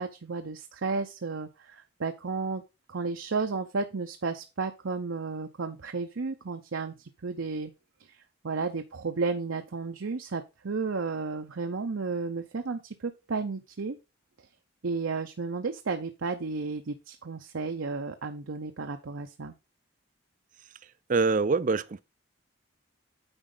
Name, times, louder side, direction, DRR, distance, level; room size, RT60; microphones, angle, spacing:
voice 1, 0.0-2.6 2.9-7.7 8.4-14.0 14.8-19.5, right 4 dB, 75° right, 0.6 m, -33 dB
voice 2, 21.1-22.0, right 4 dB, 40° right, 0.4 m, -24 dB
8.9 x 5.1 x 3.8 m
head